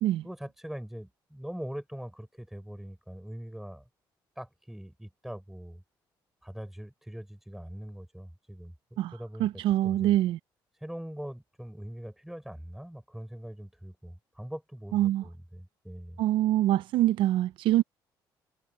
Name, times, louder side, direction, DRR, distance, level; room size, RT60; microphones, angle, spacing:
voice 1, 0.2-3.8 4.4-5.8 6.4-8.7 9.1-10.2 10.8-16.2, equal, 5° right, 6.3 m, -42 dB
voice 2, 9.4-10.4 14.9-15.2 16.2-17.8, right 13 dB, 80° right, 0.5 m, -24 dB
cardioid pair, 100°, 9 cm